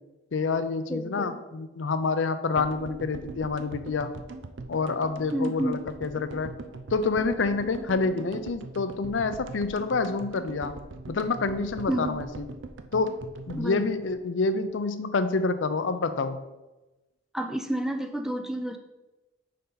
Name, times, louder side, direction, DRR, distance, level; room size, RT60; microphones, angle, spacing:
voice 1, 0.3-4.1 4.7-6.5 6.9-10.8 11.1-12.5 12.9-13.1 13.5-16.4, left 4 dB, 90° left, 11 dB, 0.5 m, -27 dB
voice 2, 0.9-1.4 5.3-5.8 11.9-12.2 13.6-13.9 17.3-18.8, right 1 dB, 5° right, 6 dB, 0.4 m, -30 dB
sound 1, 2.6-14.8 15.0-15.1 15.3-15.4, right 3 dB, 85° right, 0.5 m, -42 dB
6.4 x 5.4 x 4.0 m, 1.1 s
head